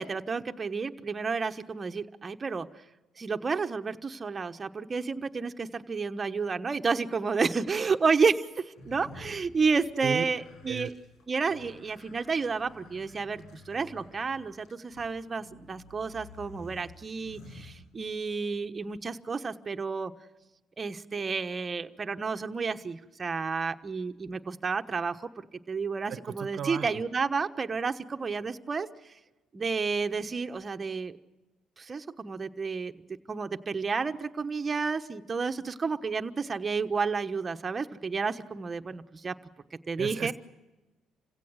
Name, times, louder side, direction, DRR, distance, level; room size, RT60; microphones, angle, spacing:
voice 1, 0.0-2.7 3.2-10.9 11.3-20.1 20.8-25.2 25.7-28.9 29.5-31.2 31.8-32.9 33.3-39.3 39.9-40.3, right 5 dB, 35° right, 7 dB, 1.2 m, -31 dB
sound 1, 8.7-18.4, left 2 dB, 70° left, 7.4 m, -51 dB
voice 2, 26.1-27.0 40.0-40.3, right 8 dB, 60° right, 12 dB, 1.1 m, -35 dB
27.0 x 16.5 x 6.5 m, 1.1 s
supercardioid pair, 70°, 0 cm